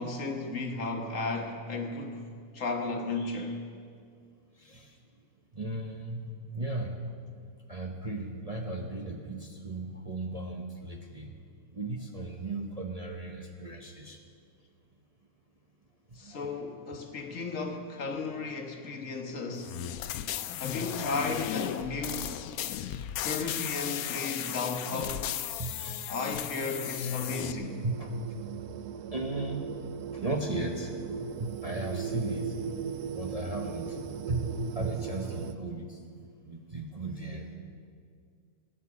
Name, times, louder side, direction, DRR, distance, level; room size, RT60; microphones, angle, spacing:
voice 1, 0.0-2.2 2.5-3.6 16.1-19.8 20.6-22.4 23.2-25.3 26.1-27.8, left 3 dB, 55° left, 1.6 m, -34 dB
voice 2, 5.5-7.0 7.7-11.3 11.7-14.2 16.2-16.5 25.6-26.0 27.8-28.1 29.1-29.7 30.1-30.9 31.2-32.5 33.1-34.0 34.3-36.0 36.4-37.5, right 2 dB, 30° right, 0.9 m, -35 dB
sound 1, 19.6-27.5, left 11 dB, 75° left, 1.0 m, -35 dB
sound 2, 27.2-35.5, right 7 dB, 80° right, 1.2 m, -38 dB
16.5 x 10.0 x 7.2 m
omnidirectional pair, 1.6 m